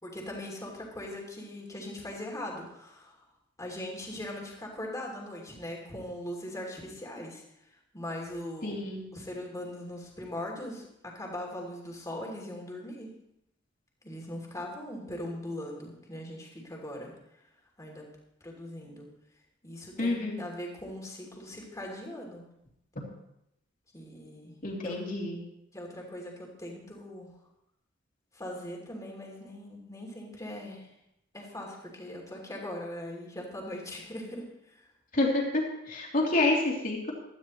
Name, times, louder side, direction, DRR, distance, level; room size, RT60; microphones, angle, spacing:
voice 1, 0.0-3.2 3.6-7.4 7.9-8.8 9.1-13.1 14.0-17.1 17.8-18.1 18.4-19.1 19.6-22.4 23.9-24.5 24.8-25.0 25.7-27.3 28.3-30.9 31.3-34.8, left 1 dB, 15° left, -1 dB, 2.9 m, -40 dB
voice 2, 8.6-9.1 20.0-20.4 24.6-25.4 35.1-37.1, left 2 dB, 45° left, -2 dB, 3.0 m, -28 dB
16.0 x 13.0 x 3.1 m, 0.82 s
head